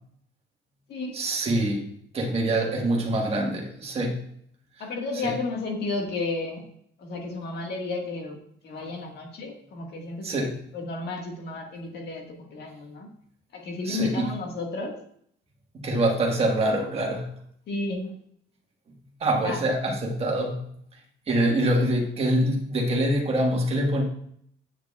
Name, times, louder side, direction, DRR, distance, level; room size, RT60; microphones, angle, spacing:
voice 1, 1.1-4.2 5.2-5.4 10.2-10.6 13.8-14.3 15.8-17.3 19.2-20.6 21.3-24.0, right 1 dB, 30° right, 0 dB, 1.5 m, -25 dB
voice 2, 4.8-6.6 7.0-8.4 8.6-13.1 13.5-14.9 17.7-18.1 19.4-19.6, left 3 dB, 55° left, 1 dB, 1.7 m, -32 dB
8.8 x 7.7 x 2.3 m, 0.66 s
cardioid pair, 160°, 20 cm